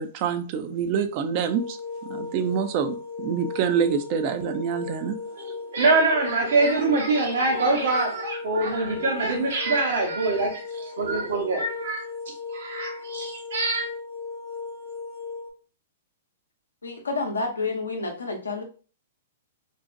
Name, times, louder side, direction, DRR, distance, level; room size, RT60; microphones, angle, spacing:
voice 1, 0.0-5.2, right 7 dB, 45° right, 0.4 m, -26 dB
sound 1, 1.3-15.5, left 4 dB, 45° left, 0.5 m, -37 dB
voice 2, 5.7-12.0 12.5-13.9, right 3 dB, 70° right, 0.9 m, -24 dB
voice 3, 16.8-18.6, left 3 dB, 85° left, 0.6 m, -29 dB
2.5 x 2.1 x 2.5 m
hypercardioid pair, 115°, 0 cm